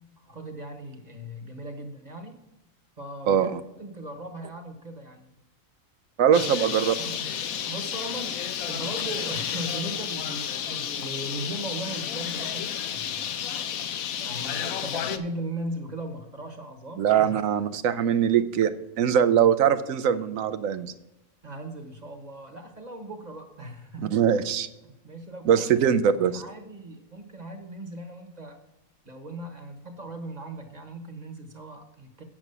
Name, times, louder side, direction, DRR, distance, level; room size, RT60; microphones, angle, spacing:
voice 1, 0.2-2.4 3.0-5.3 6.3-7.4 7.6-13.3 14.2-17.3 21.4-24.2 24.8-28.6 29.0-32.2, right 1 dB, 35° right, 5 dB, 1.2 m, -38 dB
voice 2, 3.3-3.6 6.2-6.9 17.0-20.9 24.1-24.7 25.5-26.4, right 8 dB, 75° right, 13 dB, 1.0 m, -22 dB
Bird, 6.3-15.2, left 9 dB, 85° left, 1.1 m, -31 dB
8.7 x 6.1 x 6.7 m, 0.94 s
omnidirectional pair, 1.4 m